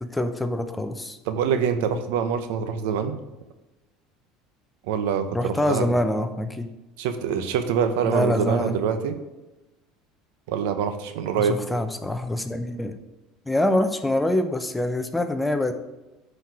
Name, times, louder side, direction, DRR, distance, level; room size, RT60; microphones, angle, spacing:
voice 1, 0.0-1.2 5.3-6.7 8.0-8.8 11.3-13.0 13.5-15.7, left 1 dB, 5° left, 8 dB, 0.7 m, -25 dB
voice 2, 1.3-3.2 4.8-5.9 7.0-9.2 10.5-11.6, right 7 dB, 80° right, 9 dB, 0.8 m, -25 dB
9.0 x 4.5 x 4.8 m, 1.0 s
supercardioid pair, 115°, 0 cm